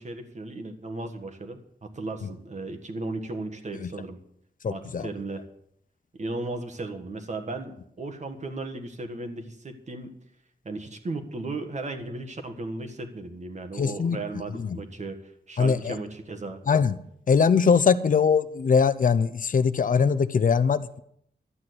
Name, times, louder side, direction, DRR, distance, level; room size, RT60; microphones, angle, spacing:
voice 1, 0.0-4.2 4.7-5.4 6.2-10.1 10.6-16.6, right 2 dB, 45° right, 6 dB, 1.6 m, -36 dB
voice 2, 4.6-5.1 13.8-14.2 14.5-14.8 15.6-15.9 16.7-17.0 17.3-21.0, left 6 dB, 55° left, 14 dB, 0.7 m, -22 dB
12.5 x 8.8 x 8.0 m, 0.72 s
wide cardioid pair, 160°, 17 cm